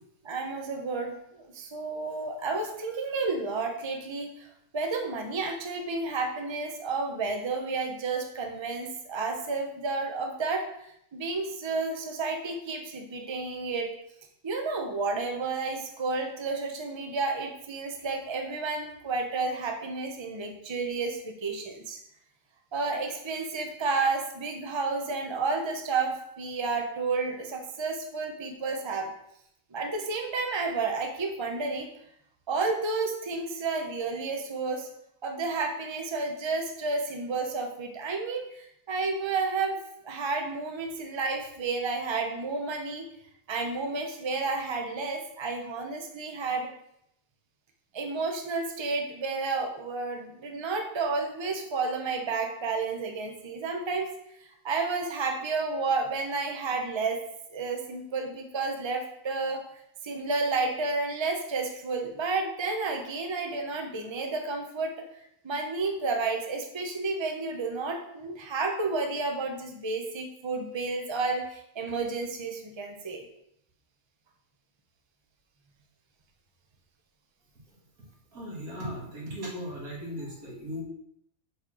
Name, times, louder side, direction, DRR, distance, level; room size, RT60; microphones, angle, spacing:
voice 1, 0.2-4.5 4.7-10.6 11.1-13.9 14.4-22.0 22.7-29.1 29.7-31.9 32.5-34.9 35.2-39.8 40.0-43.0 43.5-46.7 47.9-54.1 54.4-57.2 57.5-59.6 60.0-64.9 65.4-73.2, right 3 dB, 25° right, 3 dB, 0.8 m, -31 dB
voice 2, 78.3-80.8, equal, 90° right, -3 dB, 2.4 m, -37 dB
5.3 x 4.3 x 6.0 m, 0.75 s
omnidirectional pair, 1.5 m